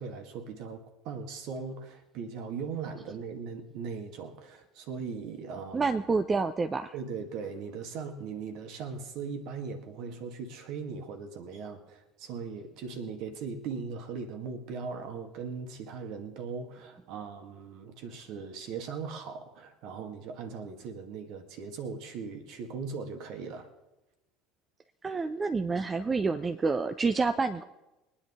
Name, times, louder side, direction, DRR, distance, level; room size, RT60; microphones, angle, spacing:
voice 1, 0.0-5.9 6.9-23.7, right 5 dB, 55° right, 6 dB, 1.7 m, -39 dB
voice 2, 5.7-6.9 25.0-27.6, right 4 dB, 25° right, 8 dB, 0.6 m, -28 dB
22.0 x 10.0 x 3.6 m, 1.0 s
figure-of-eight pair, 65°, 0 cm